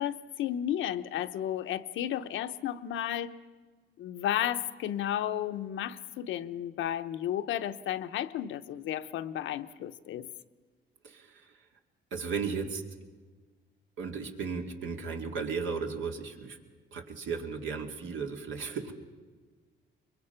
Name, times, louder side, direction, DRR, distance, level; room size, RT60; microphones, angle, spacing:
voice 1, 0.0-3.4 4.0-10.3, left 11 dB, 80° left, 10 dB, 0.8 m, -33 dB
voice 2, 11.0-11.6 12.1-12.8 14.0-16.6 16.9-18.9, right 5 dB, 75° right, 3 dB, 2.3 m, -35 dB
23.5 x 22.5 x 5.8 m, 1.4 s
cardioid pair, 90°, 20 cm